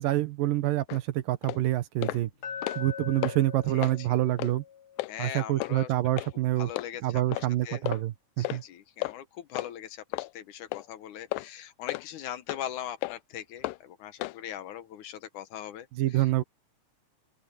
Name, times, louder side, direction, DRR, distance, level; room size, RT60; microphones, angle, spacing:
voice 1, 0.0-2.3 2.8-4.6 5.2-6.7 7.0-8.6 15.9-16.4, right 15 dB, 80° right, 2.7 m, -27 dB
sound 1, 0.9-1.0 1.4-1.6 2.0-2.2 2.5-2.9 3.2-3.4 3.8-4.0 4.4-4.5 5.0-5.1 5.6-5.7 6.2-6.3 6.8-6.9 7.3-7.5 7.9-8.0 8.4-8.6 9.0-9.1 9.5-9.7 10.1-10.3 10.7-10.9 11.3-11.5 11.9-12.0 12.5-12.6 13.0-13.2 13.6-13.8 14.2-14.4, left 20 dB, 85° left, 2.3 m, -33 dB
Glass, 2.4-6.5, left 8 dB, 45° left, 1.9 m, -43 dB
voice 2, 3.7-4.1 5.1-5.9 6.6-7.8 8.4-15.9 16.1-16.3, left 11 dB, 70° left, 2.4 m, -40 dB
open air
omnidirectional pair, 3.9 m